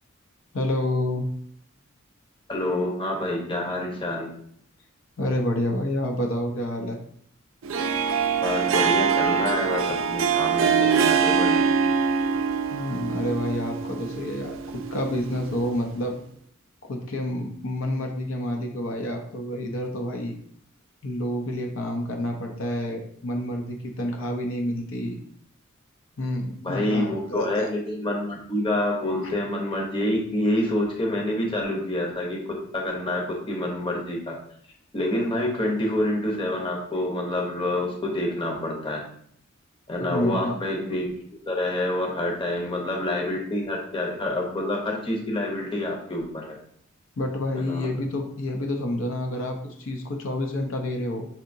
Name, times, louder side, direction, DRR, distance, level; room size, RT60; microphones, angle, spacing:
voice 1, 0.5-1.2 5.2-7.0 12.7-16.2 16.8-20.3 21.0-25.2 26.2-27.7 29.2-29.3 40.0-40.6 47.2-51.3, left 1 dB, 70° left, 2 dB, 0.7 m, -29 dB
voice 2, 2.5-4.3 8.4-11.7 26.6-32.4 32.7-34.4 34.9-39.0 39.9-41.1 41.5-46.4 47.5-47.9, left 1 dB, 25° left, -1 dB, 0.8 m, -27 dB
Harp, 7.6-15.9, right 6 dB, 65° right, 0.4 m, -24 dB
5.6 x 2.8 x 2.6 m, 0.64 s
head